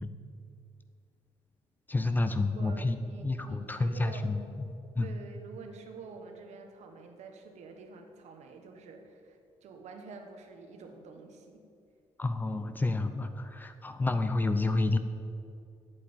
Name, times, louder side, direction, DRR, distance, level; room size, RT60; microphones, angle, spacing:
voice 1, 1.9-3.0 3.2-4.4 5.0-5.1 12.2-15.0, left 2 dB, 15° left, 9 dB, 0.5 m, -29 dB
voice 2, 2.5-4.3 5.0-11.6, right 4 dB, 80° right, 4 dB, 1.4 m, -48 dB
8.5 x 7.8 x 8.9 m, 2.4 s
cardioid pair, 175°, 12 cm